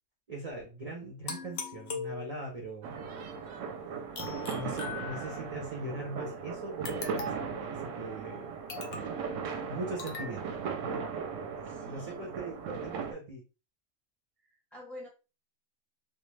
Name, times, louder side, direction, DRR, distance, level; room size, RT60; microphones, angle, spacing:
voice 1, 0.3-3.0 4.5-8.5 9.3-10.6 10.9-11.0 11.9-13.4, right 2 dB, 50° right, -1 dB, 0.4 m, -41 dB
sound 1, 1.3-2.7 4.1-5.6 6.8-7.6 8.7-9.2 10.0-10.3, left 5 dB, 65° left, 0.6 m, -40 dB
sound 2, 2.8-13.1, right 6 dB, 70° right, 0.8 m, -38 dB
voice 2, 8.8-9.1 11.6-12.1 14.7-15.1, left 1 dB, ahead, -2 dB, 0.7 m, -48 dB
2.3 x 2.3 x 3.1 m, 0.31 s
omnidirectional pair, 1.5 m